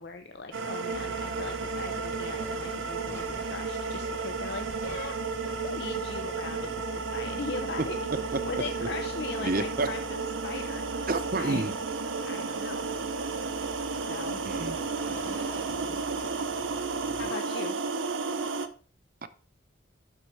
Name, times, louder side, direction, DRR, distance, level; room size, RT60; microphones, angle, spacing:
voice 1, 0.0-5.2 5.6-8.0 8.5-10.2 10.4-11.0 11.4-11.6 12.3-12.9 14.1-14.4 17.1-17.8, left 4 dB, 60° left, 0.6 m, -39 dB
sound 1, 0.5-18.7, right 4 dB, 90° right, 0.8 m, -33 dB
sound 2, 0.9-17.3, equal, 10° left, 1.3 m, -45 dB
voice 2, 9.4-9.9 11.1-11.7 14.4-14.8 19.2-19.3, right 2 dB, 50° right, 0.7 m, -29 dB
12.0 x 4.5 x 4.6 m
head